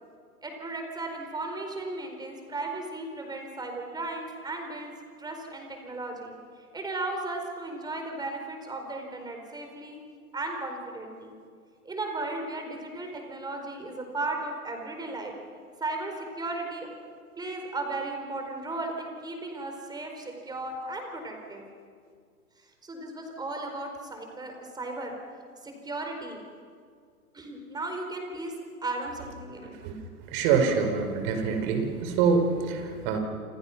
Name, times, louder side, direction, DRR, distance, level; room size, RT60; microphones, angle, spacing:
voice 1, 0.4-4.9 5.2-6.4 6.7-10.0 10.3-11.3 11.8-15.3 15.8-16.9 17.4-21.6 22.8-25.2 25.6-26.4 27.3-28.5 28.8-29.8, right 2 dB, 10° right, 3 dB, 4.5 m, -35 dB
voice 2, 30.3-33.2, right 5 dB, 40° right, 6 dB, 4.6 m, -25 dB
29.0 x 28.0 x 6.0 m, 2.2 s
hypercardioid pair, 125°, 45 cm